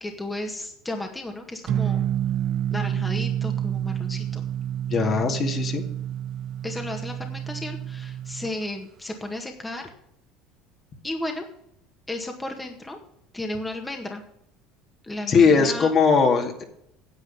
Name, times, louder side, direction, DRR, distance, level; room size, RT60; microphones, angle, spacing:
voice 1, 0.0-2.0 2.7-4.4 6.6-9.9 11.0-11.4 12.1-13.0 13.3-14.2 15.0-15.9, left 1 dB, 10° left, 4 dB, 1.8 m, -33 dB
sound 1, 1.7-8.5, right 10 dB, 50° right, 0.5 m, -28 dB
voice 2, 4.9-5.8 15.3-16.6, left 5 dB, 40° left, 4 dB, 2.3 m, -20 dB
9.8 x 8.1 x 7.2 m, 0.74 s
supercardioid pair, 95°, 0 cm